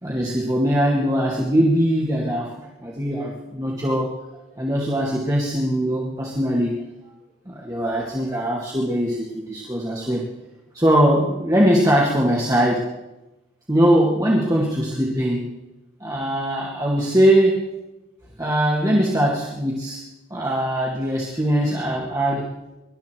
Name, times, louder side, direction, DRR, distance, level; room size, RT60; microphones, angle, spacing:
voice 1, 0.0-4.1 4.6-6.8 7.5-10.3 10.7-12.9 13.7-15.5 16.0-17.6 18.4-20.0 20.3-22.5, equal, 20° right, -4 dB, 2.2 m, -21 dB
25.0 x 12.5 x 4.6 m, 1.0 s
head